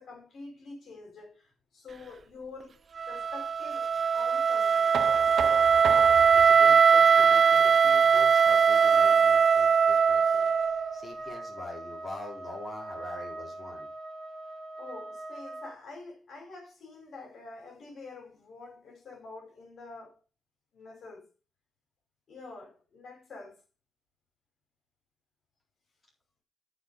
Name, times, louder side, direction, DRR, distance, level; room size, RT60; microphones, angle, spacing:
voice 1, 0.0-5.0 14.7-20.2 20.7-21.3 22.3-23.6, left 3 dB, 65° left, 4.4 m, -47 dB
Wind instrument woodwind instrument, 3.0-11.0, right 6 dB, 45° right, 0.4 m, -21 dB
Knock, 4.9-10.7, right 8 dB, 80° right, 0.8 m, -40 dB
voice 2, 6.0-13.9, left 2 dB, 20° left, 4.3 m, -44 dB
Trumpet, 8.4-15.8, right 2 dB, 5° left, 3.0 m, -41 dB
13.5 x 4.8 x 5.3 m
wide cardioid pair, 135°, 0 cm